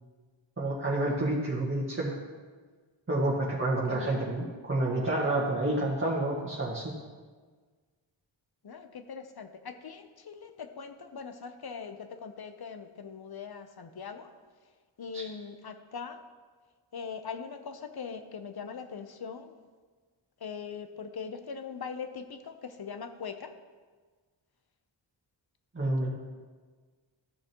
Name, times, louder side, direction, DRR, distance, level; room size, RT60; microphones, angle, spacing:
voice 1, 0.6-2.1 3.1-6.9 15.1-15.2 25.7-26.1, right 2 dB, 25° right, -6 dB, 1.6 m, -29 dB
voice 2, 3.9-4.3 8.6-14.3 15.0-16.2 16.9-19.5 20.4-23.5, left 6 dB, 50° left, 8 dB, 0.8 m, -41 dB
13.5 x 6.4 x 3.0 m, 1.5 s
cardioid pair, 60°, 49 cm